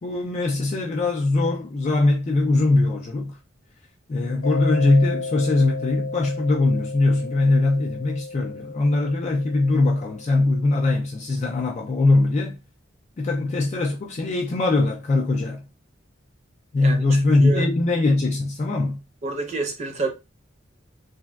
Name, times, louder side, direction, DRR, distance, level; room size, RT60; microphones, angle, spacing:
voice 1, 0.0-3.4 4.1-12.6 13.2-15.6 16.7-19.0, left 2 dB, 35° left, 0.3 m, -21 dB
Mallet percussion, 4.4-10.8, left 3 dB, 90° left, 0.7 m, -35 dB
voice 2, 19.2-20.1, right 3 dB, 35° right, 0.6 m, -27 dB
3.2 x 2.1 x 2.3 m
head